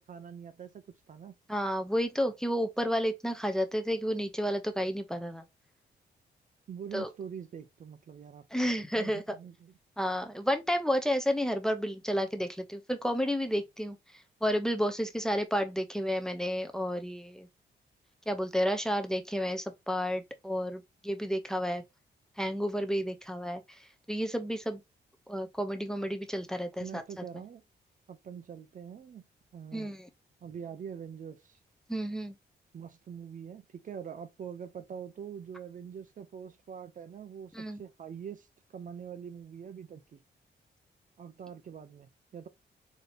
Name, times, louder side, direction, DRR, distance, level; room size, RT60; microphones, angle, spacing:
voice 1, 0.0-1.4 6.7-9.7 26.8-27.6 28.1-29.2 29.5-29.9 30.4-31.6 32.7-40.2 41.2-42.5, right 7 dB, 45° right, 0.5 m, -44 dB
voice 2, 1.5-5.4 6.9-7.1 8.5-9.2 10.0-14.0 14.4-17.5 18.3-21.8 22.4-24.8 25.3-27.0 29.7-30.1 31.9-32.4 37.5-37.8, equal, 5° left, 0.6 m, -31 dB
4.2 x 2.7 x 3.2 m
cardioid pair, 120°, 18 cm